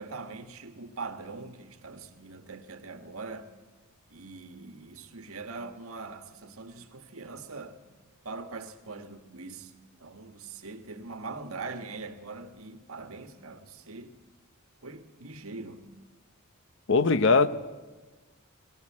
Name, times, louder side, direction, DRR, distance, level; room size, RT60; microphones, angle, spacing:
voice 1, 0.0-3.5 4.1-7.8 8.2-9.7 10.0-14.1 14.8-15.9, right 3 dB, 80° right, 1.6 m, -42 dB
voice 2, 16.9-17.5, left 4 dB, 60° left, 0.8 m, -20 dB
19.0 x 18.0 x 8.6 m
head